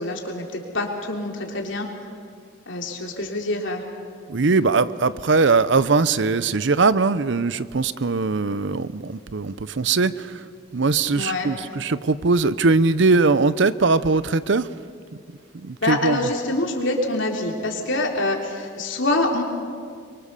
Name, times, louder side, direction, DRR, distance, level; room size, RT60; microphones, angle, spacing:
voice 1, 0.0-1.9 2.7-3.8 11.1-11.5 15.8-19.4, left 2 dB, 65° left, 1 dB, 3.4 m, -25 dB
voice 2, 4.3-10.4 10.7-14.7 15.5-16.2, right 4 dB, 60° right, 16 dB, 0.6 m, -20 dB
24.5 x 23.5 x 6.8 m, 2.1 s
head